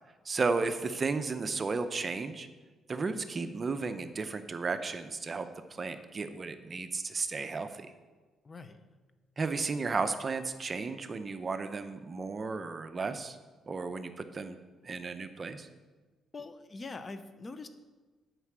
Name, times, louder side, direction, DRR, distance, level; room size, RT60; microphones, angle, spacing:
voice 1, 0.3-2.5 2.9-5.5 5.8-7.9 9.4-13.4 13.7-14.6 14.8-15.7, right 4 dB, 35° right, 9 dB, 0.7 m, -34 dB
voice 2, 8.4-8.8 16.3-17.7, left 3 dB, 30° left, 10 dB, 0.7 m, -43 dB
7.9 x 5.8 x 7.4 m, 1.3 s
cardioid pair, 90°, 0 cm